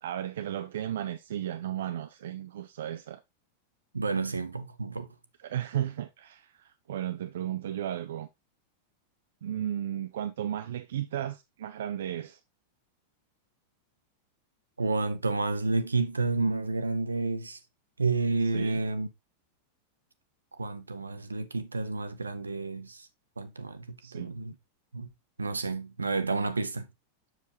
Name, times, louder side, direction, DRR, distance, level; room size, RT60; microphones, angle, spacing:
voice 1, 0.0-3.2 5.4-8.3 9.4-12.4 18.4-18.8 24.0-24.3, right 11 dB, 60° right, 0.4 m, -34 dB
voice 2, 3.9-5.1 14.8-17.6 18.0-19.1 20.6-23.1 23.4-24.5 24.9-25.1 25.4-26.9, right 3 dB, 80° right, 0.8 m, -30 dB
7.4 x 6.6 x 2.9 m
figure-of-eight pair, 90°, 0 cm